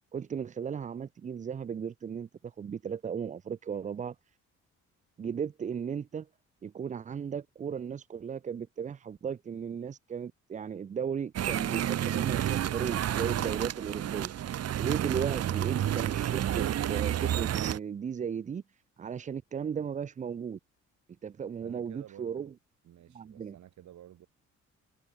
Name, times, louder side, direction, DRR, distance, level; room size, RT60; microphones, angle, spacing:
voice 1, 0.1-4.2 5.2-6.3 6.6-14.3 14.8-20.6 21.2-22.5 23.1-23.6, right 7 dB, 25° right, 0.4 m, -36 dB
sound 1, 11.4-17.8, right 11 dB, 55° right, 0.9 m, -30 dB
voice 2, 21.6-22.5 22.8-24.3, right 12 dB, 70° right, 3.0 m, -52 dB
cardioid pair, 90°, 30 cm